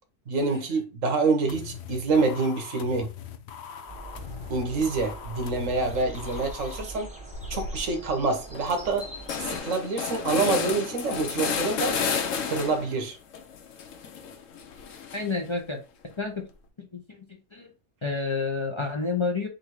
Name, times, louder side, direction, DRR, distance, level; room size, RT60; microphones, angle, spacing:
voice 1, 0.3-3.1 4.5-7.1 7.5-9.1 9.4-12.0 12.5-13.2, right 3 dB, 80° right, 1.4 m, -26 dB
sound 1, 1.5-6.8, left 8 dB, 65° left, 0.7 m, -42 dB
sound 2, 3.9-9.6, right 1 dB, 5° right, 1.4 m, -42 dB
sound 3, 7.3-7.8 8.2-8.3 8.5-13.0 13.3-15.5, left 6 dB, 85° left, 1.1 m, -32 dB
voice 2, 15.1-15.8 16.2-16.3 17.5-17.7 18.0-19.5, left 4 dB, 30° left, 0.7 m, -28 dB
3.8 x 2.7 x 4.5 m
omnidirectional pair, 1.3 m